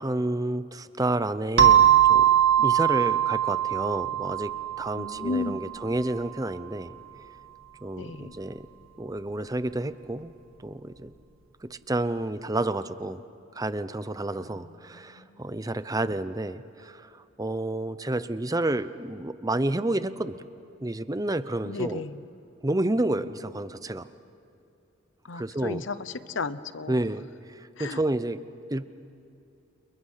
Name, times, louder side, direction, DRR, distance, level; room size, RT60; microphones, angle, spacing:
voice 1, 0.0-2.2 2.6-4.5 4.8-6.9 7.8-8.6 9.0-10.3 10.6-11.1 11.6-13.2 13.5-17.0 17.4-20.5 20.8-22.0 22.6-24.1 25.3-25.8 26.9-27.3 27.8-28.4 28.7-28.8, right 2 dB, 20° right, 13 dB, 0.7 m, -30 dB
sound 1, 1.6-6.0, right 10 dB, 90° right, 2.1 m, -21 dB
voice 2, 5.0-5.6 8.0-8.4 14.4-14.7 14.9-15.3 21.6-22.3 25.3-27.0 27.8-28.0, left 3 dB, 70° left, 14 dB, 0.9 m, -34 dB
29.5 x 29.0 x 5.7 m, 2.7 s
head